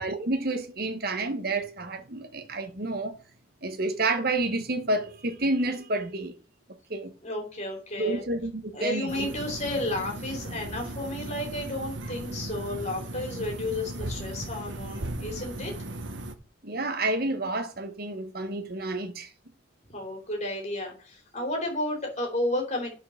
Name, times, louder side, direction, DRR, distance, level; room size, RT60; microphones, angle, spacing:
voice 1, 0.0-3.2 3.6-6.3 6.9-7.1 8.0-9.3 16.6-19.3, right 2 dB, 55° right, 1.2 m, -29 dB
voice 2, 7.2-8.2 8.7-15.7 19.9-23.0, left 1 dB, 35° left, 3.6 m, -32 dB
sound 1, 9.1-16.3, right 1 dB, 80° right, 1.1 m, -37 dB
9.3 x 5.5 x 6.5 m
head